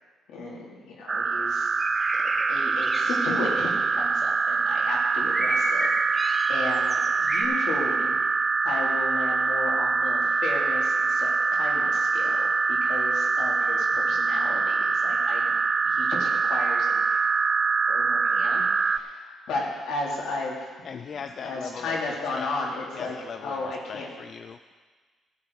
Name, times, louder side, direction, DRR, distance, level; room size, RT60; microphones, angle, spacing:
voice 1, 0.3-1.7 2.5-5.9 6.2-8.2 8.6-15.5 15.8-17.2 17.9-20.7 21.1-23.1 23.4-24.1, left 3 dB, 85° left, -3 dB, 3.1 m, -34 dB
sound 1, 1.1-19.0, right 4 dB, 35° right, 0.5 m, -24 dB
sound 2, 1.6-2.5 2.8-3.2 5.3-6.6 6.9-7.4, equal, ahead, 2.1 m, -31 dB
voice 2, 20.8-22.5 22.9-24.7, left 6 dB, 55° left, 7 dB, 0.5 m, -39 dB
16.0 x 8.6 x 4.8 m, 1.4 s
cardioid pair, 90°, 0 cm